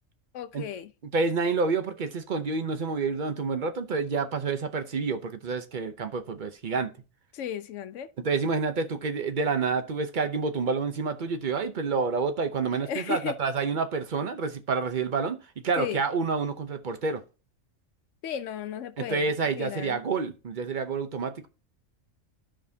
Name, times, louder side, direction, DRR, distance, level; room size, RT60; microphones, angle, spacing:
voice 1, 0.3-0.9 7.3-8.1 12.8-13.4 15.8-16.0 18.2-19.3 19.6-20.0, left 9 dB, 70° left, 0.9 m, -34 dB
voice 2, 1.1-6.9 8.2-17.2 19.0-21.5, right 4 dB, 45° right, 0.7 m, -28 dB
13.0 x 5.1 x 2.7 m
omnidirectional pair, 1.4 m